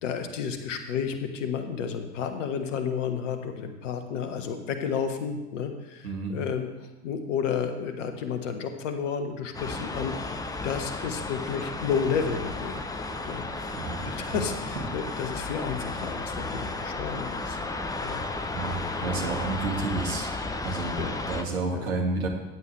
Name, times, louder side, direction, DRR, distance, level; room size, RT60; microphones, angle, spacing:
voice 1, 0.0-12.8 13.2-13.4 14.0-17.6 18.0-18.2 19.0-19.4 21.0-21.2 21.7-21.9, left 6 dB, 60° left, 7 dB, 1.4 m, -31 dB
voice 2, 6.0-6.4 13.7-14.4 18.5-18.7 19.0-20.3 20.6-21.0 21.3-22.3, right 3 dB, 70° right, 1 dB, 2.2 m, -30 dB
sound 1, 9.5-21.4, left 2 dB, 10° left, 0.7 m, -33 dB
15.0 x 9.2 x 3.3 m, 1.1 s
figure-of-eight pair, 75°, 43 cm